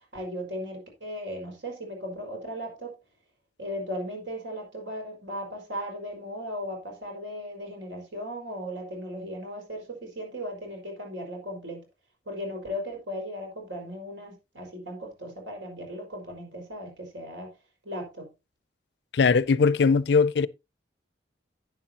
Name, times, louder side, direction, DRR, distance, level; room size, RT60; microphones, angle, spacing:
voice 1, 0.1-2.9 3.6-11.8 12.2-17.5 17.8-18.3, equal, 85° right, 5.1 m, -37 dB
voice 2, 19.1-20.5, left 5 dB, 65° left, 0.4 m, -20 dB
11.5 x 9.6 x 2.8 m
head